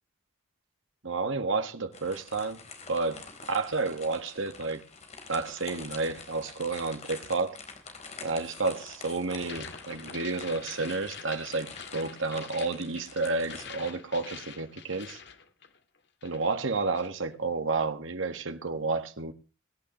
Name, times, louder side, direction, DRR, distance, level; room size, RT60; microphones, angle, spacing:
voice 1, 1.0-2.6 2.9-3.2 3.5-4.8 5.3-7.6 8.2-15.2 16.2-19.3, right 3 dB, 80° right, 1.7 m, -31 dB
sound 1, 1.9-13.7, left 4 dB, 35° left, 4.0 m, -47 dB
sound 2, 9.4-16.0 16.2-17.2, left 6 dB, 55° left, 1.9 m, -46 dB
23.5 x 11.5 x 3.1 m
head